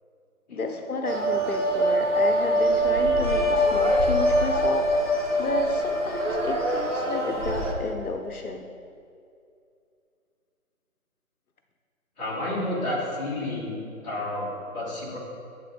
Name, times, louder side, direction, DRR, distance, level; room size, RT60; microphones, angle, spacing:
voice 1, 0.5-8.7, left 3 dB, 80° left, 4 dB, 0.8 m, -32 dB
sound 1, 1.0-7.7, right 2 dB, 55° right, 1.6 m, -25 dB
sound 2, 3.2-7.6, left 2 dB, 65° left, 1.2 m, -26 dB
voice 2, 12.2-15.2, left 1 dB, 30° left, -7 dB, 2.3 m, -31 dB
9.0 x 8.0 x 3.7 m, 2.5 s
figure-of-eight pair, 160°, 43 cm